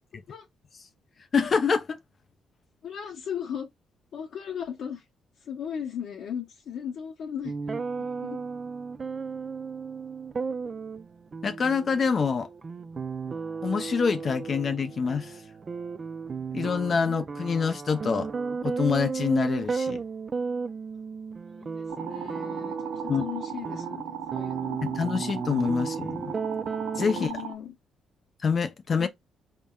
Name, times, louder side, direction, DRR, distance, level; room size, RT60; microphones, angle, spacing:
voice 1, 1.3-2.0 11.4-12.5 13.6-15.4 16.5-18.3 18.6-20.0 23.1-23.2 24.8-26.3 26.9-27.3 28.4-29.1, left 5 dB, 45° left, 0.5 m, -26 dB
voice 2, 2.8-3.7 4.1-5.0 5.4-8.4 21.5-24.8 27.1-27.7 28.9-29.1, left 8 dB, 75° left, 0.9 m, -37 dB
sound 1, 7.4-27.3, right 5 dB, 40° right, 0.4 m, -34 dB
sound 2, 21.9-27.5, right 8 dB, 80° right, 0.8 m, -37 dB
4.1 x 3.6 x 2.3 m
cardioid pair, 90°, 0 cm